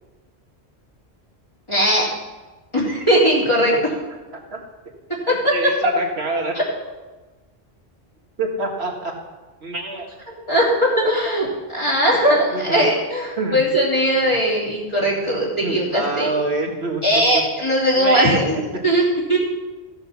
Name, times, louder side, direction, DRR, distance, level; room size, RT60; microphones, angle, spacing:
voice 1, 1.7-2.0 2.7-3.7 5.4-5.5 10.5-16.3 17.0-19.0 19.3-19.4, equal, 25° left, -5 dB, 3.1 m, -19 dB
voice 2, 5.3-6.5 8.4-9.1 9.6-10.1 12.5-12.8 13.4-13.6 15.6-17.0 17.3-17.4 17.9-18.4, right 3 dB, 70° right, 1 dB, 2.0 m, -26 dB
15.0 x 6.8 x 5.7 m, 1.2 s
omnidirectional pair, 1.1 m